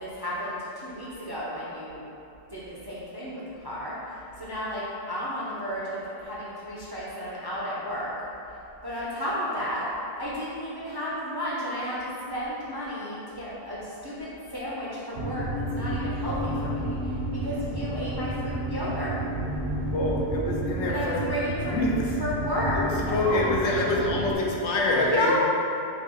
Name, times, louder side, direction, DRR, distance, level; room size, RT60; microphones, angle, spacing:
voice 1, 0.0-2.0 2.5-4.0 4.4-8.1 8.8-9.9 10.2-15.4 15.7-17.0 17.4-19.1 20.9-21.8 22.2-23.6 24.9-25.3, equal, 35° right, -8 dB, 0.4 m, -32 dB
sound 1, 15.1-24.3, right 1 dB, 65° right, 0.9 m, -31 dB
voice 2, 19.9-21.2 21.5-21.9 22.7-25.3, left 2 dB, 85° left, -3 dB, 1.0 m, -26 dB
4.0 x 2.3 x 4.5 m, 2.8 s
omnidirectional pair, 1.2 m